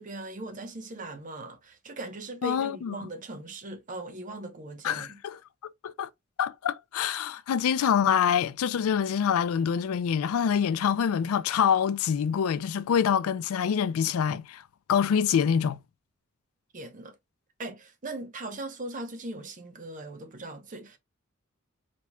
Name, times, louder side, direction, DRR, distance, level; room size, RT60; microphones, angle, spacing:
voice 1, 0.0-5.2 16.7-17.2 17.6-21.0, right 2 dB, 40° right, 0.7 m, -39 dB
voice 2, 2.4-2.9 4.8-5.3 5.8-6.1 6.4-14.6 14.9-15.8, left 7 dB, 90° left, 0.4 m, -25 dB
4.3 x 3.0 x 2.2 m
head